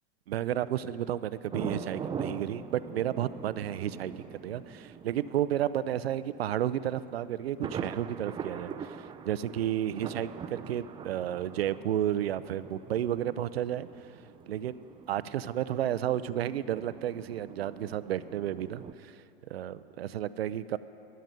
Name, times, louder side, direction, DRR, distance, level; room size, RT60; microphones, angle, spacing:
voice 1, 0.3-13.9 14.5-14.8 15.1-19.2 19.5-20.8, right 11 dB, 85° right, 15 dB, 0.5 m, -32 dB
sound 1, 1.5-18.9, right 7 dB, 15° right, 0.4 m, -43 dB
12.5 x 7.7 x 8.9 m, 2.7 s
hypercardioid pair, 100°, 30 cm